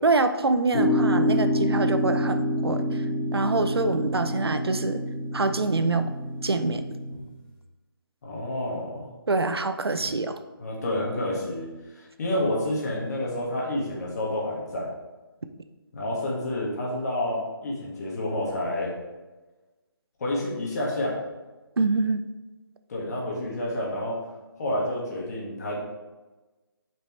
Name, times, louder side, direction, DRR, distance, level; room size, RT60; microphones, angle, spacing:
voice 1, 0.0-3.0 3.3-5.0 5.3-6.1 6.4-6.8 9.3-10.4 21.8-22.2, right 3 dB, 80° right, 9 dB, 0.6 m, -25 dB
sound 1, 0.7-7.1, equal, 10° left, 2.3 m, -27 dB
voice 2, 8.2-9.1 9.9-10.1 10.6-14.9 15.9-18.9 20.2-21.2 22.9-24.2 24.6-25.8, left 1 dB, 45° left, -3 dB, 1.9 m, -29 dB
6.9 x 5.3 x 3.3 m, 1.2 s
figure-of-eight pair, 150°, 13 cm